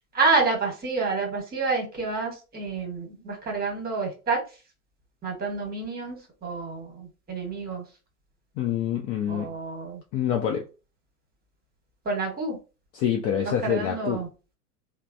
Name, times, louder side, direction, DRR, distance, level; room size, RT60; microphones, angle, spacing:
voice 1, 0.1-4.4 5.2-6.2 6.4-7.8 9.3-10.0 12.0-12.6 13.6-14.3, right 4 dB, 20° right, 1.3 m, -28 dB
voice 2, 8.6-9.5 10.1-10.6 12.9-14.2, left 9 dB, 30° left, 0.4 m, -26 dB
3.1 x 2.0 x 2.5 m
hypercardioid pair, 90°, 46 cm